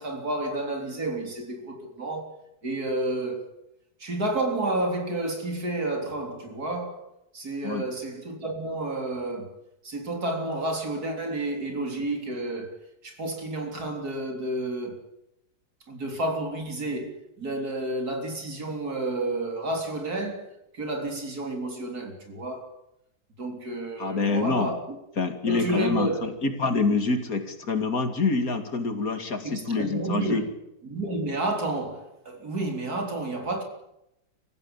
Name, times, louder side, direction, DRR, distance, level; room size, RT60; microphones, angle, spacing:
voice 1, 0.0-2.4 2.6-3.5 4.0-7.1 7.3-9.5 9.8-12.8 13.0-15.0 15.9-20.5 20.7-22.7 23.4-24.8 25.4-26.2 29.4-30.5 30.8-33.6, right 2 dB, 70° right, 4.1 m, -30 dB
voice 2, 24.0-24.7 25.2-30.4, left 3 dB, 60° left, 2.7 m, -26 dB
25.0 x 15.5 x 8.9 m
omnidirectional pair, 1.7 m